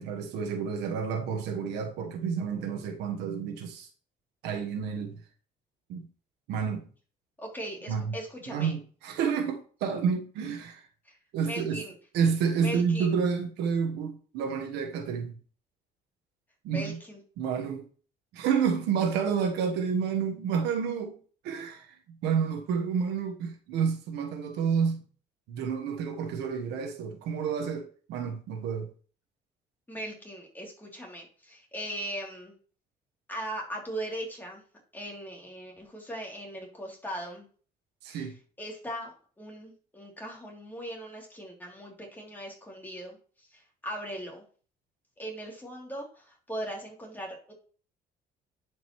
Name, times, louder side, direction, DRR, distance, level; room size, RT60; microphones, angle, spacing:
voice 1, 0.0-3.9 4.4-5.2 5.9-6.1 6.5-6.8 7.9-8.2 8.5-10.8 11.3-11.8 12.1-15.3 16.6-17.0 17.4-17.9 18.3-21.2 21.4-21.9 22.2-25.0 25.5-28.9 38.0-38.4, right 6 dB, 85° right, 1.2 m, -29 dB
voice 2, 7.4-8.7 11.1-11.2 11.4-11.9 12.6-13.1 16.7-17.2 29.9-32.5 33.3-34.6 34.9-37.5 38.1-38.3 38.6-44.4 45.2-47.5, right 1 dB, 10° left, 2.8 m, -39 dB
10.5 x 5.2 x 3.0 m
cardioid pair, 110°, 17 cm